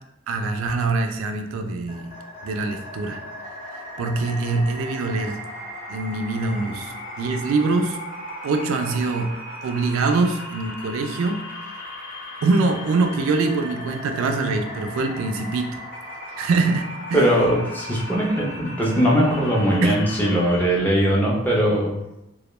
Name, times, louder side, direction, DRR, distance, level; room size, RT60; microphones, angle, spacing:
voice 1, 0.3-2.1 2.4-3.2 4.0-5.4 5.9-8.0 8.4-9.3 9.6-11.4 12.4-15.7 16.4-17.3 19.8-20.0, right 3 dB, 85° right, 5 dB, 0.3 m, -23 dB
sound 1, 1.9-20.6, left 1 dB, 40° left, 0.8 m, -37 dB
voice 2, 17.1-21.9, equal, 10° left, -5 dB, 0.4 m, -20 dB
2.1 x 2.1 x 3.0 m, 0.90 s
head